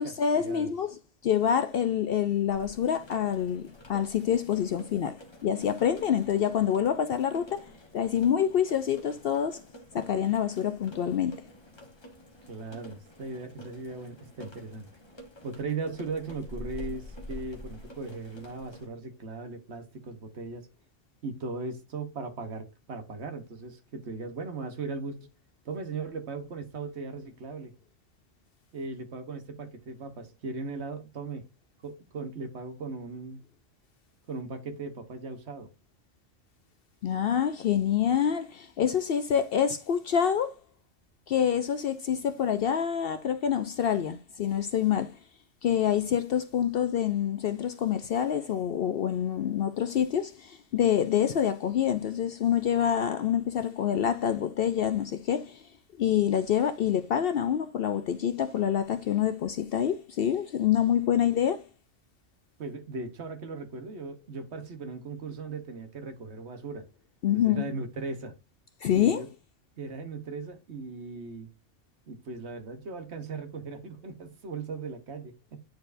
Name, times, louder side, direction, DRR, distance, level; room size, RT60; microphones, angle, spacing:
voice 1, 0.0-9.6 9.9-11.4 37.0-40.6 41.3-45.2 45.6-55.7 56.0-61.7 67.2-67.7 68.8-69.2, left 9 dB, 60° left, 0.6 m, -27 dB
sound 1, 2.5-18.9, left 1 dB, 20° left, 1.2 m, -48 dB
voice 2, 12.5-14.9 15.4-20.7 21.2-25.3 25.6-27.7 28.7-31.5 31.8-33.4 34.3-35.7 62.6-66.9 67.3-68.3 68.9-69.3 69.8-71.5 72.1-75.6, right 3 dB, 60° right, 1.3 m, -38 dB
9.5 x 4.5 x 2.5 m
omnidirectional pair, 1.3 m